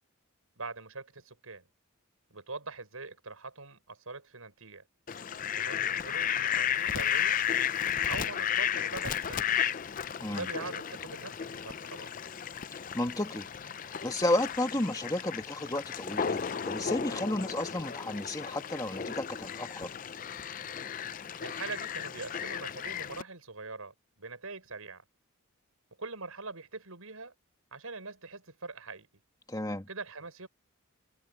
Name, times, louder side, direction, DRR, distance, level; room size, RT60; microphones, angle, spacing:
voice 1, 0.6-1.6 2.3-4.8 5.5-7.4 8.1-9.7 10.3-12.1 21.4-25.0 26.0-27.3 27.7-29.1 29.9-30.5, right 3 dB, 85° right, 5.7 m, -43 dB
Fowl, 5.1-23.2, left 8 dB, 40° left, 0.4 m, -34 dB
voice 2, 12.7-13.5 13.8-19.9 29.5-29.9, left 1 dB, 15° left, 2.0 m, -32 dB
head